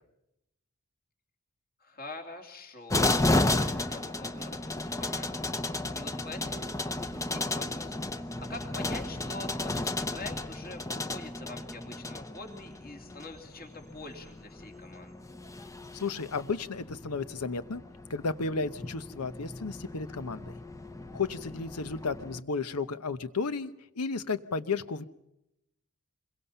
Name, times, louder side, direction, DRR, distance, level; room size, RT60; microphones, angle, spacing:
voice 1, 1.8-5.4 5.7-15.1, left 2 dB, 45° left, 3 dB, 2.9 m, -45 dB
sound 1, 2.9-22.4, left 2 dB, 15° left, 0.7 m, -34 dB
voice 2, 15.9-17.8 18.1-20.5 21.1-25.0, left 4 dB, 85° left, 13 dB, 0.9 m, -33 dB
26.0 x 22.5 x 5.6 m, 0.86 s
head